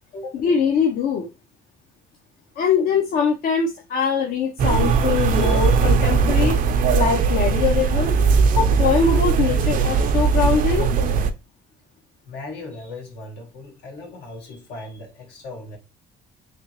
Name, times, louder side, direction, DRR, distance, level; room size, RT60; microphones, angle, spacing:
voice 1, 0.3-1.3 2.6-6.6 6.9-8.2 8.6-10.9, left 6 dB, 60° left, 0.8 m, -22 dB
sound 1, 4.6-11.3, right 5 dB, 55° right, 0.5 m, -19 dB
voice 2, 12.3-15.8, left 2 dB, 80° left, 1.7 m, -37 dB
3.4 x 2.9 x 2.9 m
cardioid pair, 110°, 17 cm